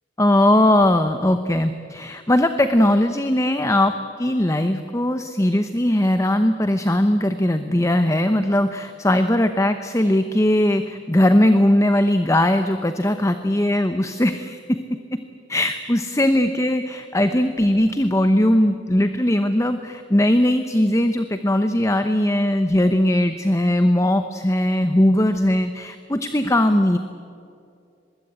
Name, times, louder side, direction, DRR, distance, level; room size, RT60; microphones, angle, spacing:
voice 1, 0.2-15.2 15.5-27.0, left 1 dB, 15° left, 9 dB, 0.9 m, -19 dB
23.5 x 21.0 x 8.8 m, 2.5 s
head